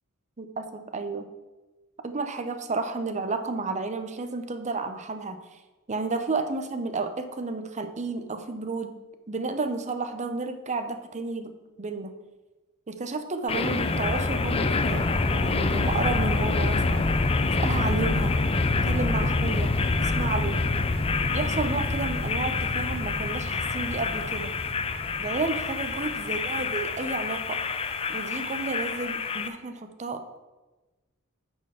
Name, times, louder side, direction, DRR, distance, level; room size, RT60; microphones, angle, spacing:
voice 1, 0.4-1.3 2.0-5.4 5.9-9.0 9.3-12.1 12.9-17.1 17.6-18.4 18.8-19.7 20.0-20.6 21.3-24.5 25.1-27.6 28.1-30.2, right 3 dB, 35° right, 8 dB, 0.7 m, -31 dB
sound 1, 13.5-29.5, left 3 dB, 25° left, 0.5 m, -26 dB
8.7 x 4.5 x 6.5 m, 1.2 s
head